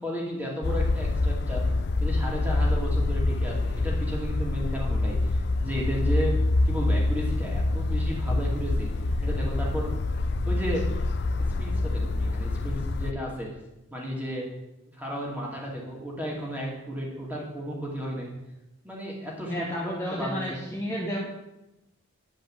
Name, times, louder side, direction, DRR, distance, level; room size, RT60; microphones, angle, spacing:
voice 1, 0.0-1.6 2.0-6.3 6.7-8.9 9.2-9.9 10.5-10.8 11.6-13.5 13.9-14.4 14.9-18.3 18.8-19.7 20.1-20.6, equal, 10° right, -3 dB, 2.4 m, -33 dB
sound 1, 0.6-13.1, left 2 dB, 50° left, 0.4 m, -26 dB
voice 2, 19.5-21.2, equal, 10° left, -5 dB, 1.3 m, -31 dB
11.0 x 5.3 x 7.5 m, 0.95 s
head